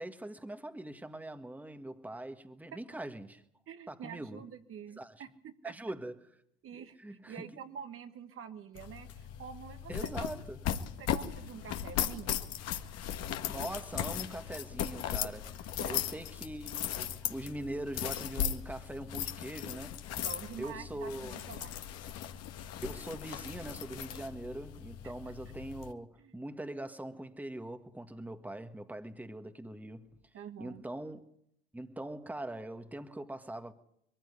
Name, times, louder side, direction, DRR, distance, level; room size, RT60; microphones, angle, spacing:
voice 1, 0.0-3.4 3.9-4.4 5.0-5.1 5.6-6.2 6.7-7.4 9.9-10.6 13.5-20.0 20.6-21.4 22.8-30.1 30.6-31.3 31.7-33.7, right 1 dB, 5° right, 1.7 m, -42 dB
voice 2, 3.7-5.7 6.6-7.0 7.3-10.3 11.0-12.6 15.8-16.0 20.2-21.8 25.0-25.1 26.2-26.3 30.3-30.8, right 7 dB, 45° right, 1.7 m, -47 dB
sound 1, 8.8-25.9, left 10 dB, 55° left, 1.8 m, -38 dB
22.5 x 15.0 x 9.9 m
hypercardioid pair, 70°, 31 cm